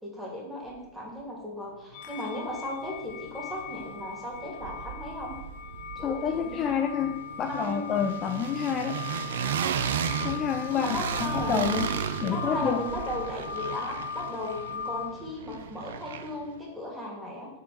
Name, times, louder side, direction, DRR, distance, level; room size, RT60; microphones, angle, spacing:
voice 1, 0.0-5.4 6.0-7.1 7.4-7.8 10.7-11.6 12.3-17.5, left 1 dB, 5° right, -5 dB, 2.7 m, -36 dB
sound 1, 1.9-15.1, left 8 dB, 45° left, 0.9 m, -39 dB
sound 2, 2.5-2.6 2.9-4.0 4.3-16.5, right 7 dB, 60° right, 0.5 m, -35 dB
voice 2, 6.0-9.0 10.2-11.9 12.2-12.8, left 8 dB, 30° left, 7 dB, 0.5 m, -29 dB
6.8 x 4.2 x 5.3 m, 0.97 s
figure-of-eight pair, 90°, 0 cm